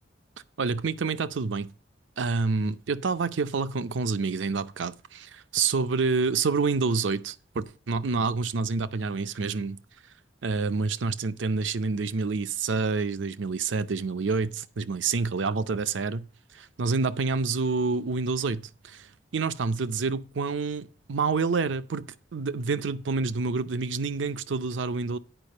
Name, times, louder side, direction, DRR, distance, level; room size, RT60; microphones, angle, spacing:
voice 1, 0.6-1.7 2.2-9.8 10.4-16.3 16.5-19.1 19.3-25.2, right 4 dB, 80° right, 0.6 m, -28 dB
9.0 x 5.0 x 6.5 m
head